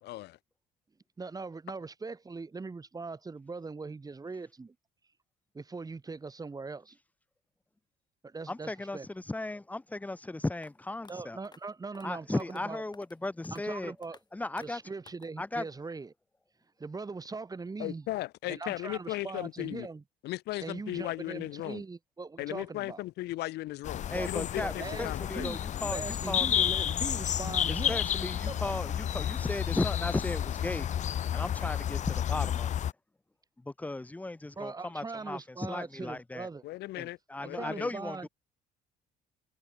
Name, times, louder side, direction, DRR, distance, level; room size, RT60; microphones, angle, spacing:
voice 1, 0.0-0.4 17.8-19.9 20.2-21.8 22.4-25.5 36.6-37.9, left 17 dB, 80° left, 1.7 m, -37 dB
voice 2, 1.2-4.7 5.5-7.0 8.2-9.1 11.1-12.8 13.5-14.2 14.6-16.1 16.8-18.1 18.5-20.0 20.6-23.0 24.1-24.3 24.6-28.0 28.5-28.7 34.6-36.6 37.5-38.3, right 4 dB, 20° right, 4.1 m, -41 dB
voice 3, 8.5-11.4 12.0-13.9 14.3-14.8 15.4-15.6 24.1-26.7 27.7-30.9 31.3-32.9 33.7-36.5 37.0-38.3, left 2 dB, 10° left, 0.7 m, -36 dB
sound 1, 10.6-10.7 11.0-11.1 11.4-11.6 11.9-12.1 12.4-12.6 12.9-13.2 13.4-13.6 14.0-14.2 14.6-14.7 15.1-15.3, left 4 dB, 25° left, 7.9 m, -54 dB
sound 2, 23.8-32.9, left 10 dB, 45° left, 0.7 m, -31 dB
cardioid pair, 110°, 17 cm